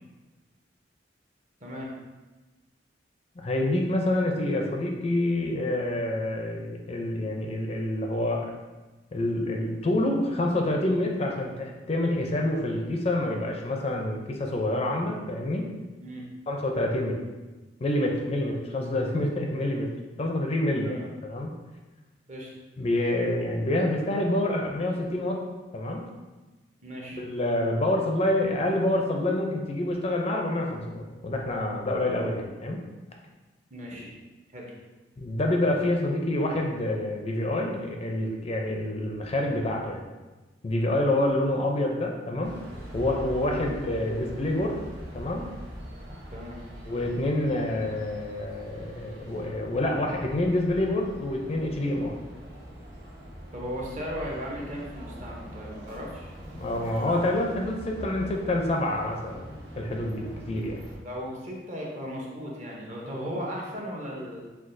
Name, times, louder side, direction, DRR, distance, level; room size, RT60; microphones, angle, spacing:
voice 1, 1.6-1.9 16.0-16.2 18.4-18.5 20.8-21.1 22.3-22.5 26.8-27.2 33.7-34.1 34.5-34.7 43.5-43.8 46.3-46.6 53.5-56.3 61.0-64.4, equal, 40° right, -2 dB, 0.8 m, -36 dB
voice 2, 3.4-8.6 9.1-15.7 16.5-17.2 17.8-19.9 20.2-21.5 22.8-25.4 25.7-26.1 27.2-32.8 35.2-40.0 40.6-42.6 42.9-44.8 45.1-45.5 46.9-52.2 56.5-59.4 59.8-60.8, left 1 dB, 35° left, 1 dB, 0.4 m, -27 dB
sound 1, 42.4-61.0, equal, 65° right, 1.0 m, -42 dB
6.0 x 2.3 x 2.5 m, 1.2 s
head